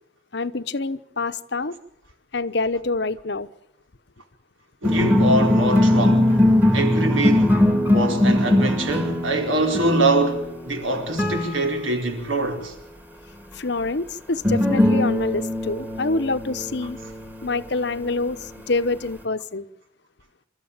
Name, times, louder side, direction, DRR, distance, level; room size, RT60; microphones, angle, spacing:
voice 1, 0.3-1.7 2.3-3.5 13.5-17.0 17.4-19.7, left 3 dB, 55° left, 0.9 m, -26 dB
sound 1, 4.8-12.2 14.4-18.5, left 1 dB, 10° right, 2.0 m, -21 dB
voice 2, 4.8-6.4 6.7-12.7, right 1 dB, 80° right, 4.7 m, -24 dB
27.5 x 13.5 x 9.0 m
head